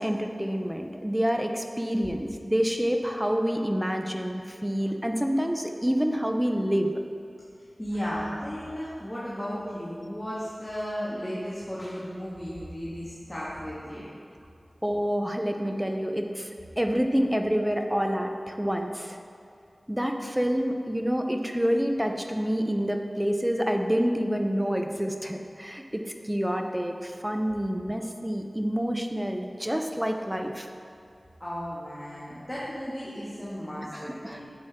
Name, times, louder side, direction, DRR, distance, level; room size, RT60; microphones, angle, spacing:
voice 1, 0.0-7.0 14.8-16.5 16.8-19.2 19.9-30.7 33.9-34.4, equal, 10° right, 4 dB, 0.8 m, -27 dB
voice 2, 7.8-14.1 31.4-34.4, equal, 15° left, -9 dB, 2.2 m, -35 dB
10.5 x 8.2 x 3.8 m, 2.4 s
wide cardioid pair, 50°, 0 cm